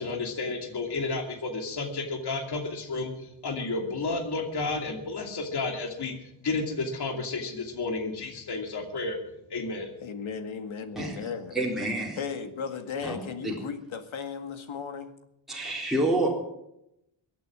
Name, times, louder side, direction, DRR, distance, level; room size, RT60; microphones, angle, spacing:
voice 1, 0.0-9.2 9.5-9.9, left 3 dB, 55° left, 3 dB, 2.7 m, -32 dB
voice 2, 10.0-11.6 12.2-15.1, left 6 dB, 85° left, 8 dB, 2.0 m, -36 dB
voice 3, 11.5-12.2 13.0-13.2 13.4-13.5 15.5-16.3, right 1 dB, ahead, -3 dB, 3.7 m, -27 dB
22.5 x 8.6 x 7.5 m, 0.81 s
wide cardioid pair, 135°, 47 cm